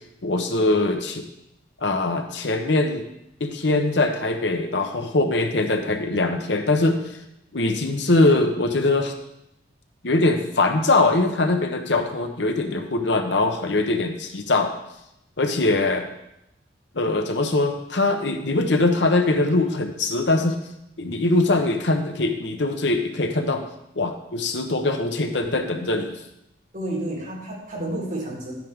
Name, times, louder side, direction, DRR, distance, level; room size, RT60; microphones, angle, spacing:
voice 1, 0.2-1.2 1.8-3.1 3.4-7.0 7.5-9.1 10.0-14.7 15.4-16.1 16.9-20.6 21.0-23.6 24.0-26.1, left 2 dB, 65° left, 5 dB, 1.0 m, -22 dB
voice 2, 26.7-28.5, right 1 dB, 45° right, -5 dB, 4.4 m, -30 dB
12.0 x 9.3 x 3.6 m, 0.85 s
head